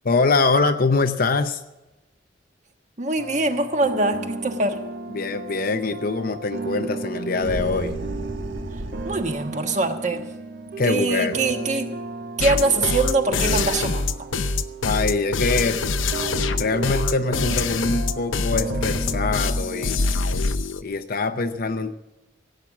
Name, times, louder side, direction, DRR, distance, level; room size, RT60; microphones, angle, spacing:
voice 1, 0.0-1.6 5.1-8.0 10.8-11.4 14.8-15.8 16.6-20.0 20.8-21.9, left 3 dB, 50° left, 7 dB, 0.7 m, -23 dB
voice 2, 3.0-4.8 9.0-10.3 10.8-11.9 12.4-14.3, right 2 dB, 40° right, 5 dB, 1.5 m, -23 dB
sound 1, 3.2-20.2, right 4 dB, 55° right, 0.8 m, -34 dB
sound 2, 7.3-9.5, right 1 dB, 80° right, 1.4 m, -33 dB
sound 3, 12.4-20.8, left 4 dB, 80° left, 0.8 m, -24 dB
17.0 x 8.9 x 7.2 m, 1.0 s
head